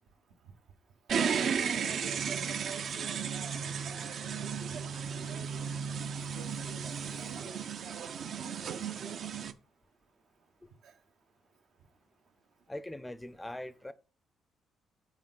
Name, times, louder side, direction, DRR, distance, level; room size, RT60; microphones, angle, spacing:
sound 1, 1.1-9.5, right 6 dB, 60° right, 0.5 m, -34 dB
voice 1, 1.5-3.6 3.9-6.1 6.3-8.2 8.6-9.2 10.8-10.9, right 6 dB, 80° right, 1.0 m, -49 dB
voice 2, 12.7-13.9, left 1 dB, 10° left, 0.5 m, -41 dB
7.3 x 4.5 x 3.8 m
cardioid pair, 90°, 0 cm